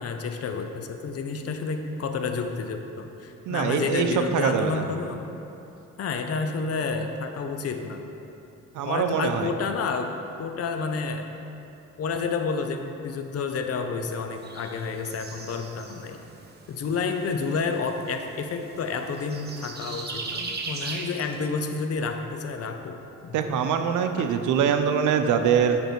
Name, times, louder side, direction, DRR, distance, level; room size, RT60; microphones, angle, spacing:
voice 1, 0.0-5.3 6.0-8.0 8.9-10.1 10.4-11.3 12.0-16.2 16.7-23.0 23.2-23.6 24.2-24.3, left 4 dB, 55° left, 6 dB, 0.7 m, -30 dB
voice 2, 3.5-4.8 8.7-9.5 23.3-25.8, right 7 dB, 80° right, 7 dB, 0.6 m, -23 dB
sound 1, 14.4-21.5, right 3 dB, 35° right, 0.9 m, -39 dB
8.0 x 5.3 x 4.6 m, 2.9 s
cardioid pair, 90°, 30 cm